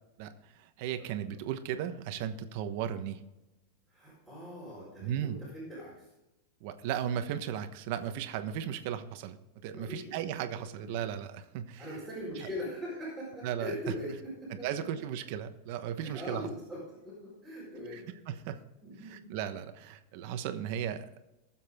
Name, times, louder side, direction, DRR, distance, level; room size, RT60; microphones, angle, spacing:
voice 1, 0.2-3.2 5.0-5.4 6.6-9.4 9.6-11.9 12.4-12.5 13.4-13.7 14.6-16.5 17.9-18.0 18.3-18.6 19.1-21.1, right 9 dB, 50° right, 9 dB, 1.1 m, -36 dB
voice 2, 3.9-6.1 9.7-11.0 11.8-14.7 16.0-18.1 18.8-19.2, left 1 dB, 5° left, -8 dB, 4.7 m, -41 dB
19.5 x 7.4 x 3.7 m, 0.99 s
supercardioid pair, 165°, 0 cm